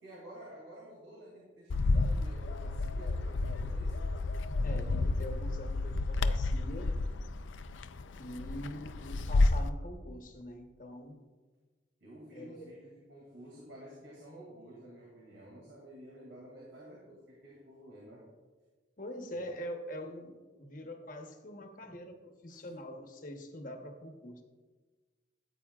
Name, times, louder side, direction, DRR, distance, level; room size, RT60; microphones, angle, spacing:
voice 1, 0.0-4.1 12.0-18.3 22.5-22.7, right 1 dB, 75° right, -5 dB, 2.5 m, -51 dB
Bird, 1.7-9.7, left 2 dB, 90° left, 0.5 m, -31 dB
voice 2, 4.6-6.9 8.1-11.2 12.3-12.8 19.0-24.4, equal, 45° left, 4 dB, 1.1 m, -44 dB
13.5 x 8.8 x 2.4 m, 1.3 s
head